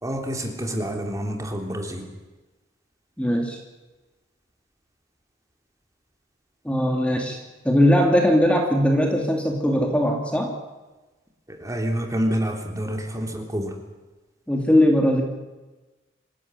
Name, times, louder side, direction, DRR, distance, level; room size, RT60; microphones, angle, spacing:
voice 1, 0.0-2.1 11.5-13.7, equal, 15° right, 3 dB, 3.3 m, -28 dB
voice 2, 3.2-3.6 6.6-7.4 7.6-10.5 14.5-15.2, equal, 5° left, 1 dB, 2.7 m, -20 dB
26.0 x 15.5 x 9.7 m, 1.2 s
head